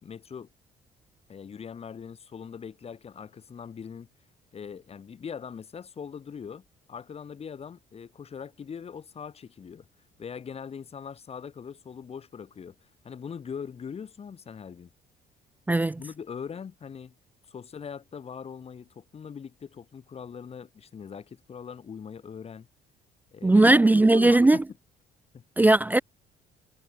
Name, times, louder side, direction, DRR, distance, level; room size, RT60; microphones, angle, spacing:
voice 1, 0.0-0.5 1.3-4.1 4.5-6.6 6.9-9.9 10.2-12.7 13.0-14.9 15.8-17.1 17.5-22.7 23.3-24.6 25.3-25.4, left 7 dB, 35° left, 2.9 m, -41 dB
voice 2, 15.7-16.0 23.4-24.6 25.6-26.0, right 2 dB, 10° right, 0.4 m, -18 dB
cardioid pair, 110°, 17 cm